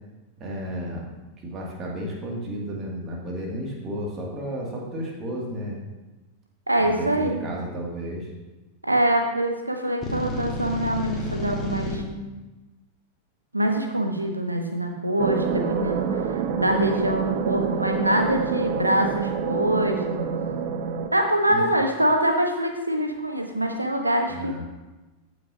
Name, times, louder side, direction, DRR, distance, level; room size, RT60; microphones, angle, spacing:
voice 1, 0.4-1.0 1.4-5.8 6.8-8.3 21.5-21.7 24.3-24.6, equal, 30° right, -2 dB, 2.3 m, -32 dB
voice 2, 6.7-7.4 8.8-12.2 13.5-16.1 16.6-20.2 21.1-24.5, right 1 dB, 85° right, 4 dB, 1.1 m, -24 dB
sound 1, 10.0-12.0, left 2 dB, 20° left, 1.7 m, -30 dB
sound 2, 15.2-21.1, right 6 dB, 50° right, 0.8 m, -27 dB
14.5 x 6.5 x 2.8 m, 1.1 s
figure-of-eight pair, 90°, 0 cm